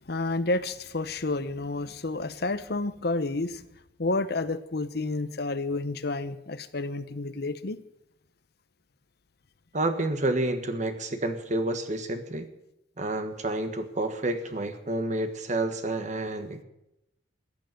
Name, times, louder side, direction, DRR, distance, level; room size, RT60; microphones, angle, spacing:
voice 1, 0.1-3.6 4.0-7.8, left 2 dB, 60° left, 1.0 m, -30 dB
voice 2, 9.7-12.5 13.0-16.6, right 2 dB, 40° right, 1.4 m, -29 dB
14.5 x 9.5 x 9.1 m
head